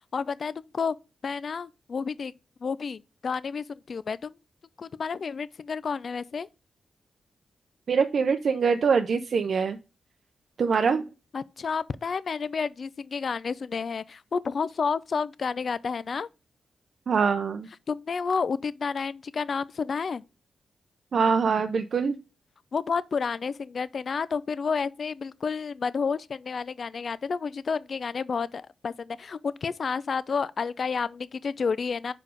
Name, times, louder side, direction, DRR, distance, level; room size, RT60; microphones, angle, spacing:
voice 1, 0.1-0.9 1.2-2.3 2.6-4.3 4.8-6.5 11.3-16.3 17.9-20.2 22.7-32.1, left 5 dB, 60° left, 0.4 m, -30 dB
voice 2, 7.9-9.8 10.6-11.0 17.1-17.7 21.1-22.2, right 5 dB, 65° right, 0.5 m, -24 dB
5.2 x 4.6 x 5.0 m
cardioid pair, 70°, 0 cm